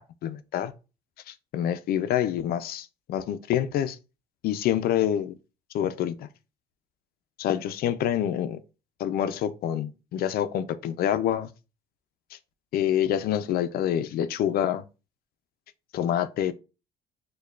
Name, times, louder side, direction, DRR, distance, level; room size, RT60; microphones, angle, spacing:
voice 1, 0.2-0.7 1.3-4.0 4.4-5.3 5.7-6.3 7.4-8.6 9.0-11.5 12.7-14.8 15.9-16.5, left 10 dB, 65° left, 0.4 m, -27 dB
6.4 x 2.3 x 2.3 m
cardioid pair, 110°, 17 cm